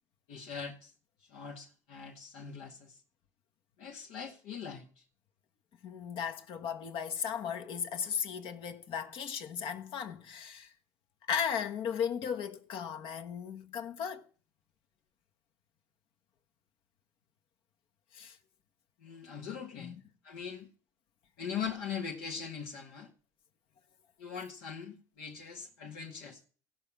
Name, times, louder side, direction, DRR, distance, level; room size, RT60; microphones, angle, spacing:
voice 1, 0.3-0.9 1.3-2.9 3.8-4.9 19.0-20.0 20.2-20.7 21.4-23.1 24.2-26.4, left 7 dB, 85° left, 2.1 m, -41 dB
voice 2, 5.8-10.7 11.3-14.2 18.1-18.4 19.8-19.9, left 7 dB, 65° left, 1.4 m, -36 dB
16.0 x 5.7 x 7.4 m
supercardioid pair, 80°, 10 cm